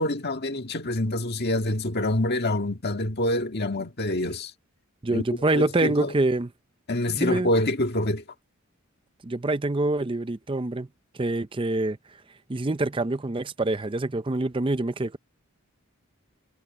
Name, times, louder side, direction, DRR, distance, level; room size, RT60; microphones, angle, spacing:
voice 1, 0.0-4.5 5.1-5.2 5.5-6.1 6.9-8.2, left 1 dB, 45° left, 1.7 m, -26 dB
voice 2, 5.0-6.5 7.1-7.5 9.2-10.9 11.2-12.0 12.5-15.2, right 2 dB, 25° right, 0.5 m, -25 dB
head